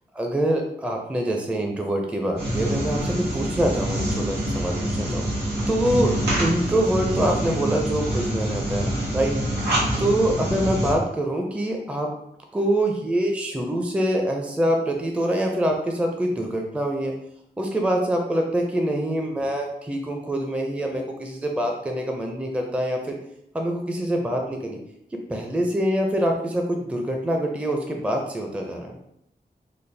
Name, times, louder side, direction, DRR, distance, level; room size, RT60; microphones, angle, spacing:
voice 1, 0.1-5.3 5.7-6.1 6.4-9.3 10.0-12.1 12.5-17.1 17.6-23.1 23.5-24.8 25.3-29.0, right 1 dB, 5° right, 2 dB, 0.4 m, -25 dB
sound 1, 2.4-10.9, right 1 dB, 90° right, 1.3 m, -26 dB
3.9 x 2.0 x 3.3 m, 0.77 s
wide cardioid pair, 95°, 17 cm